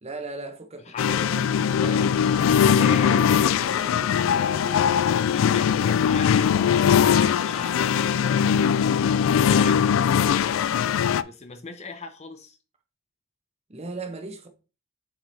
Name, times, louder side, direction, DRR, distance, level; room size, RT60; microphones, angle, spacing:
voice 1, 0.0-3.1 3.6-3.9 5.8-6.0 13.7-14.5, right 3 dB, 35° right, 0.8 m, -39 dB
sound 1, 1.0-11.2, left 8 dB, 80° left, 0.3 m, -21 dB
voice 2, 2.7-6.9 7.2-10.6 11.2-12.6, left 3 dB, 35° left, 0.6 m, -39 dB
7.4 x 4.8 x 2.7 m
head